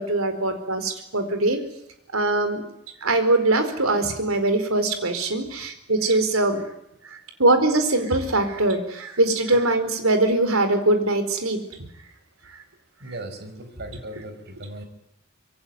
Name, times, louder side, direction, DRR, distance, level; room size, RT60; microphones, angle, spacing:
voice 1, 0.0-1.6 2.1-2.6 3.0-6.6 7.0-11.6 12.4-12.6 13.1-13.2, right 2 dB, 75° right, 8 dB, 4.5 m, -22 dB
voice 2, 13.0-14.8, right 1 dB, 50° right, 9 dB, 5.0 m, -37 dB
25.5 x 23.0 x 9.5 m, 0.80 s
head